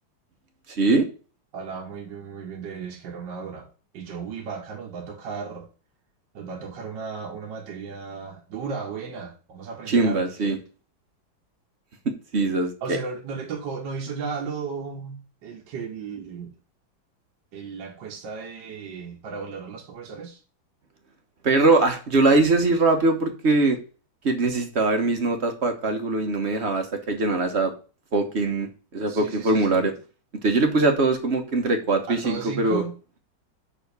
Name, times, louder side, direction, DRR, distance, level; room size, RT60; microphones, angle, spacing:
voice 1, 0.7-1.1 9.9-10.6 12.3-12.7 21.4-23.8 24.2-27.7 28.1-28.7 28.9-29.9 30.4-32.8, right 3 dB, 40° right, 1.1 m, -22 dB
voice 2, 1.5-3.7 3.9-5.7 6.3-10.6 12.8-16.5 17.5-20.4 29.1-29.8 32.1-33.0, right 5 dB, 70° right, 1.7 m, -35 dB
5.7 x 5.2 x 6.5 m
omnidirectional pair, 2.1 m